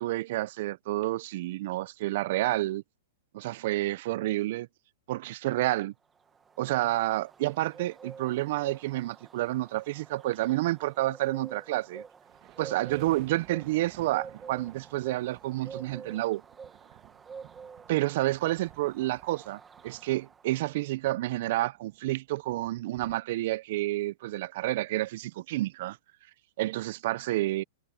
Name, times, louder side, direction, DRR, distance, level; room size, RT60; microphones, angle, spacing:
voice 1, 0.0-2.8 3.3-4.7 5.1-5.9 6.6-12.0 12.6-16.4 17.9-26.0 26.6-27.6, right 17 dB, 50° right, 0.5 m, -29 dB
sound 1, 6.1-20.7, right 6 dB, 15° right, 1.5 m, -49 dB
sound 2, 12.2-23.2, right 20 dB, 35° right, 1.3 m, -55 dB
hypercardioid pair, 150°, 0 cm